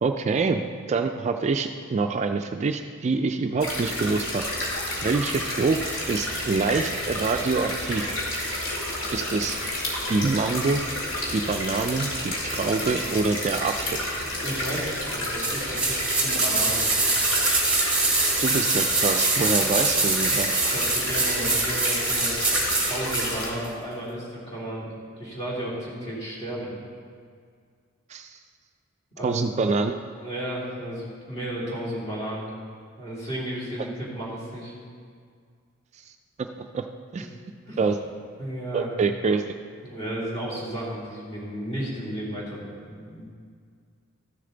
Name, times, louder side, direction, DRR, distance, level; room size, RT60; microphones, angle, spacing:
voice 1, 0.0-0.6 0.9-4.4 5.0-8.1 9.1-9.6 10.1-10.8 11.3-14.0 18.4-20.6 28.1-28.4 29.2-30.0 36.4-36.5 36.7-36.9 37.1-37.3 37.8-38.0 38.7-39.4, right 4 dB, 35° right, 6 dB, 0.3 m, -25 dB
sound 1, 3.6-23.5, left 1 dB, 75° left, 2.2 m, -30 dB
voice 2, 14.2-16.8 20.4-22.4 22.8-24.8 25.2-26.7 29.1-29.4 30.2-32.4 33.0-34.7 37.7-37.8 38.4-38.9 39.8-43.3, right 1 dB, 30° left, -6 dB, 2.9 m, -33 dB
sound 2, 15.4-23.3 23.6-23.7, right 3 dB, 5° right, 1.6 m, -24 dB
13.5 x 6.7 x 3.9 m, 2.1 s
head